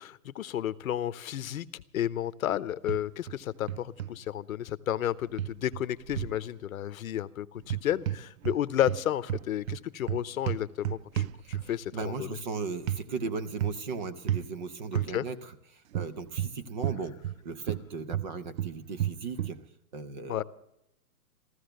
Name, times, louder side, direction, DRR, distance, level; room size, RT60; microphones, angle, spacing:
voice 1, 0.0-12.3 14.9-15.3 20.3-20.4, left 11 dB, 65° left, 17 dB, 0.8 m, -32 dB
sound 1, 2.9-3.4 3.7-4.1 5.4-6.4 7.6-8.6 8.9-11.9 12.9-13.0 13.6-13.9 14.3-14.5 15.0-15.1 15.9-17.4 17.7-19.6, right 11 dB, 65° right, 0.5 m, -32 dB
voice 2, 11.4-19.6 19.9-20.4, right 4 dB, 30° right, 13 dB, 0.7 m, -37 dB
15.0 x 14.5 x 6.5 m, 0.77 s
hypercardioid pair, 165°, 45 cm